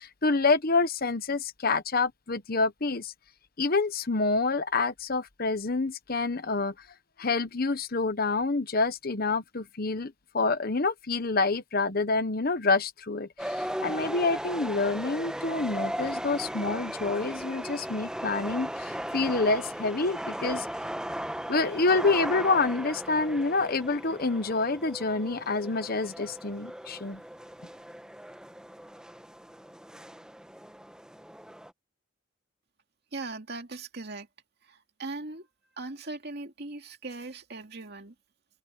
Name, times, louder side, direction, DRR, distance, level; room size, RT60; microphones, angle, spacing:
voice 1, 0.0-3.1 3.6-6.7 7.2-20.7 21.5-27.2, left 3 dB, 50° left, 1.1 m, -27 dB
sound 1, 13.4-31.7, equal, 5° right, 1.1 m, -37 dB
voice 2, 33.1-34.3 34.7-35.5 35.8-38.1, right 3 dB, 55° right, 2.4 m, -39 dB
head